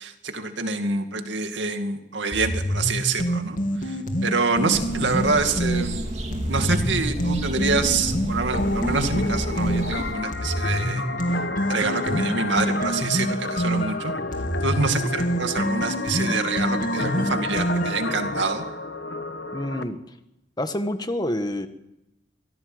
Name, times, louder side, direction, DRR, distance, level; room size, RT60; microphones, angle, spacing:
voice 1, 0.0-6.0 6.5-11.0 11.7-14.1 14.6-18.6, right 3 dB, 75° right, 6 dB, 2.4 m, -26 dB
sound 1, 2.3-5.9 6.3-9.9 10.3-18.1, equal, 45° left, 2.8 m, -26 dB
sound 2, 4.7-10.1, right 1 dB, 35° right, 2.5 m, -31 dB
sound 3, 8.5-19.8, left 3 dB, 60° left, 1.2 m, -31 dB
voice 2, 19.5-20.0 20.6-21.7, left 1 dB, 20° left, 8 dB, 1.4 m, -27 dB
24.0 x 17.0 x 7.9 m, 0.89 s
head